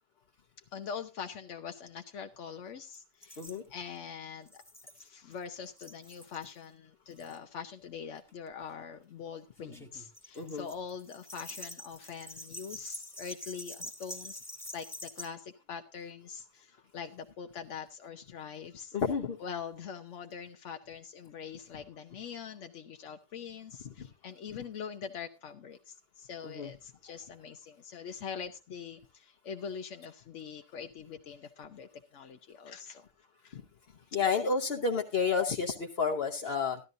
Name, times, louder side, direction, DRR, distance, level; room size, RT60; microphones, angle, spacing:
voice 1, 0.7-3.4 3.7-4.6 5.0-14.4 14.7-19.0 19.4-33.0 33.4-33.6 34.3-34.4 36.5-36.6, left 6 dB, 80° left, 6 dB, 1.1 m, -43 dB
sound 1, 2.9-3.0 3.2-3.6 4.5-5.4 5.7-6.5 7.1-7.4 8.3-8.5 9.6-15.3, left 1 dB, ahead, 1.5 m, -46 dB
voice 2, 10.3-10.6 18.9-19.4 24.0-24.1 26.4-26.7 33.5-33.6 34.1-36.8, left 5 dB, 55° left, 2 dB, 1.1 m, -30 dB
14.0 x 12.0 x 2.6 m, 0.26 s
omnidirectional pair, 1.2 m